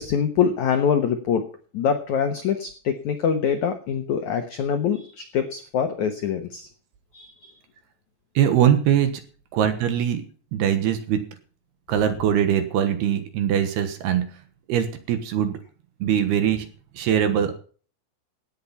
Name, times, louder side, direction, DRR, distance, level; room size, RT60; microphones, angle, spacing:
voice 1, 0.0-1.4 1.7-6.7 7.1-7.5, left 7 dB, 85° left, 7 dB, 1.6 m, -24 dB
voice 2, 8.4-9.2 9.5-10.2 10.5-11.2 11.9-14.3 14.7-15.5 16.0-16.7 16.9-17.5, right 9 dB, 70° right, 9 dB, 3.1 m, -22 dB
17.0 x 8.7 x 5.7 m, 0.42 s
omnidirectional pair, 5.4 m